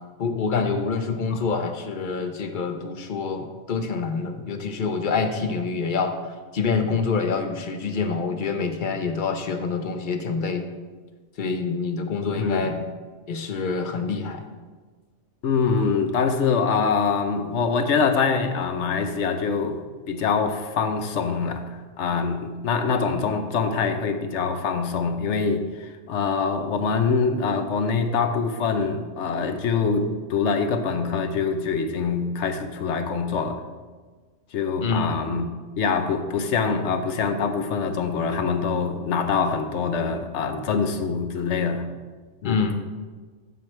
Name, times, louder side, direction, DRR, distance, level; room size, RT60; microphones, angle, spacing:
voice 1, 0.2-6.2 6.5-10.7 11.4-12.8 13.3-14.4 34.8-35.1 42.4-42.8, left 4 dB, 50° left, 6 dB, 0.8 m, -26 dB
voice 2, 12.4-12.9 15.4-19.8 20.1-33.6 34.5-35.4 35.8-41.8 42.4-42.7, left 5 dB, 70° left, 7 dB, 1.0 m, -24 dB
9.4 x 7.4 x 3.3 m, 1.4 s
omnidirectional pair, 1.3 m